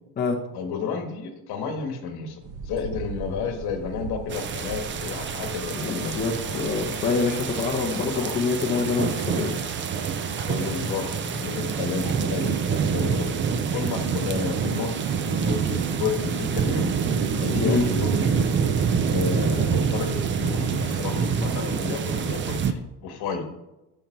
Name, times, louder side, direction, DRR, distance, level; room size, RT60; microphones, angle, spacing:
voice 1, 0.5-6.1 7.9-8.3 10.5-13.3 13.7-16.8 17.4-18.4 19.1-23.4, left 6 dB, 60° left, 5 dB, 1.6 m, -31 dB
sound 1, 2.4-7.7, right 5 dB, 45° right, 1.1 m, -40 dB
sound 2, 4.3-22.7, right 6 dB, 30° right, 0.4 m, -26 dB
sound 3, 5.4-11.6, left 3 dB, 10° right, 1.7 m, -47 dB
voice 2, 5.7-9.6 17.6-17.8, left 4 dB, 25° left, 0 dB, 0.9 m, -26 dB
13.0 x 5.5 x 4.5 m, 0.97 s
cardioid pair, 170°, 43 cm